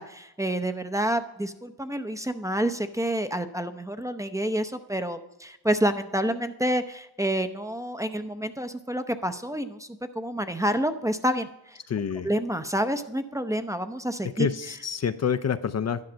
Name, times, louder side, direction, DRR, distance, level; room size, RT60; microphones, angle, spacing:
voice 1, 0.0-9.9 10.1-11.8 12.2-14.5, right 1 dB, 10° right, 9 dB, 0.7 m, -28 dB
voice 2, 11.9-12.3 14.4-16.0, left 7 dB, 40° left, 10 dB, 0.6 m, -27 dB
11.5 x 10.5 x 6.2 m, 0.89 s
wide cardioid pair, 115°, 39 cm